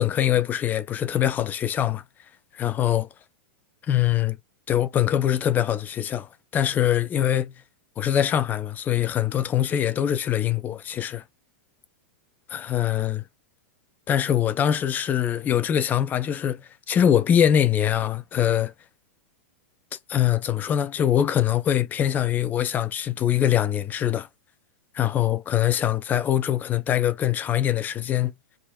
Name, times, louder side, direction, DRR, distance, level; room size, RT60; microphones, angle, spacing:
voice 1, 0.0-2.0 2.5-3.1 3.9-4.4 4.7-7.5 8.0-11.2 12.5-13.2 14.1-18.7 20.1-24.3 24.9-28.3, left 10 dB, 25° left, 0.4 m, -23 dB
3.5 x 2.0 x 2.2 m
hypercardioid pair, 115°, 7 cm